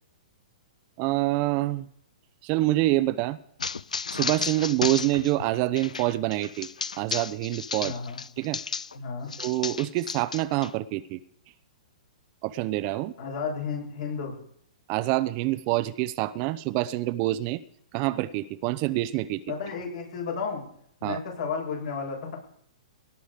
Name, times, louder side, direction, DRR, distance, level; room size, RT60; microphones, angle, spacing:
voice 1, 1.0-1.9 2.4-3.4 4.1-6.7 7.0-7.9 8.4-8.6 9.4-11.2 12.4-13.1 14.9-17.6 17.9-19.4 21.0-21.2, right 17 dB, 40° right, 14 dB, 0.7 m, -26 dB
sound 1, 3.6-9.0 9.3-10.7, left 5 dB, 90° left, 0.4 m, -33 dB
voice 2, 7.8-8.2 8.9-9.3 13.2-14.4 19.5-20.6 21.0-22.4, left 5 dB, 70° left, -1 dB, 7.3 m, -32 dB
18.0 x 9.5 x 5.0 m, 0.67 s
hypercardioid pair, 125°, 4 cm